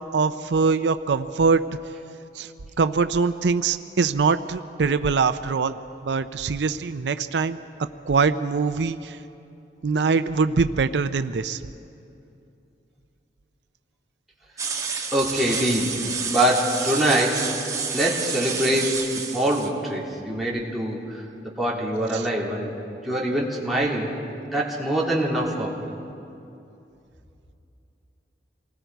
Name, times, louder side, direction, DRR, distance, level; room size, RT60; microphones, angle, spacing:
voice 1, 0.1-1.6 2.4-2.5 2.8-5.8 6.0-7.6 8.1-9.2 9.8-11.6 15.3-15.4 22.1-22.3, right 4 dB, 80° right, 11 dB, 0.5 m, -23 dB
sound 1, 14.6-19.7, right 5 dB, 20° right, 1.5 m, -29 dB
voice 2, 15.1-16.0 16.3-17.5 17.9-22.7 23.0-24.1 24.5-25.9, right 1 dB, ahead, -5 dB, 2.9 m, -24 dB
28.0 x 20.0 x 4.6 m, 2.7 s
head